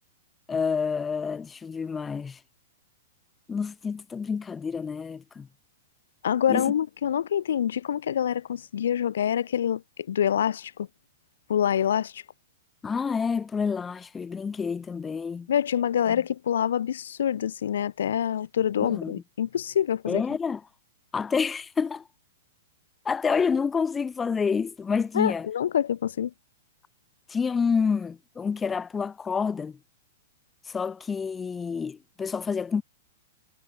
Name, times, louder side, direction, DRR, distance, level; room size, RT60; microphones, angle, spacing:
voice 1, 0.5-2.4 3.5-5.5 6.5-6.7 12.8-15.5 16.1-16.2 18.8-19.2 20.1-20.6 21.1-22.1 23.0-25.5 27.3-29.8 30.7-32.8, left 5 dB, 10° left, 2.2 m, -28 dB
voice 2, 6.2-9.8 10.1-10.9 11.5-12.2 15.5-20.2 25.1-26.3, left 9 dB, 70° left, 2.3 m, -26 dB
hypercardioid pair, 175°, 0 cm